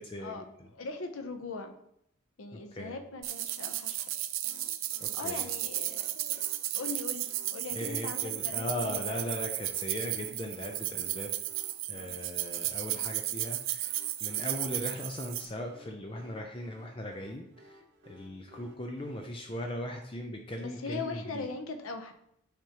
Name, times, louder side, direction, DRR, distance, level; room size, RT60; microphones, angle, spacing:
voice 1, 0.0-0.7 2.5-3.0 5.0-5.4 7.7-11.3 11.9-21.5, left 1 dB, 25° left, 3 dB, 0.5 m, -39 dB
voice 2, 0.7-1.8 2.4-4.1 5.1-6.4 6.7-9.2 20.6-22.1, left 3 dB, 90° left, 6 dB, 0.7 m, -40 dB
sound 1, 3.2-15.5, right 14 dB, 80° right, 0.4 m, -34 dB
sound 2, 4.4-19.2, equal, 55° right, 0.8 m, -58 dB
9.1 x 5.1 x 2.9 m, 0.74 s
head